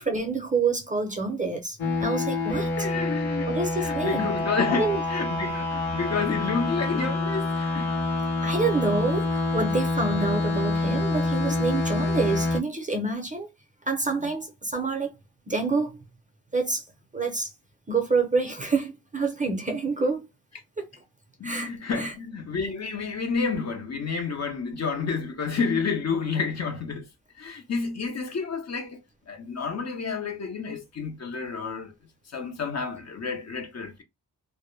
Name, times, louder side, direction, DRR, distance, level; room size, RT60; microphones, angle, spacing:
voice 1, 0.0-2.9 3.5-4.4 4.7-5.0 5.4-5.5 8.4-13.5 13.9-15.1 15.5-16.0 16.5-16.8 17.1-17.5 17.9-20.3 20.8-20.9 21.4-22.1, right 3 dB, 20° right, 0.5 m, -27 dB
sound 1, 1.8-12.6, left 2 dB, 75° left, 0.8 m, -27 dB
voice 2, 2.8-7.9 11.5-11.6 21.4-27.1 27.4-29.0 29.3-31.9 32.3-34.0, left 5 dB, 45° left, 0.5 m, -30 dB
2.2 x 2.0 x 3.0 m
wide cardioid pair, 145°, 38 cm